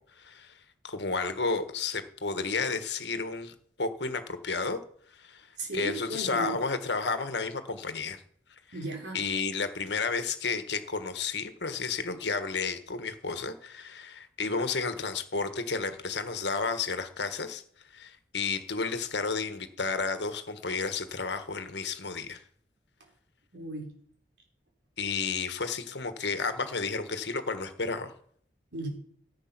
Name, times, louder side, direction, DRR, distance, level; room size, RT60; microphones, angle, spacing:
voice 1, 0.2-4.8 5.1-5.5 5.7-8.2 9.1-17.6 17.9-22.4 25.0-28.1, left 4 dB, 75° left, 9 dB, 1.4 m, -32 dB
voice 2, 5.6-6.6 8.7-9.3 23.5-23.9 28.7-28.9, right 2 dB, 80° right, 2 dB, 3.7 m, -36 dB
14.5 x 7.4 x 6.0 m, 0.62 s
head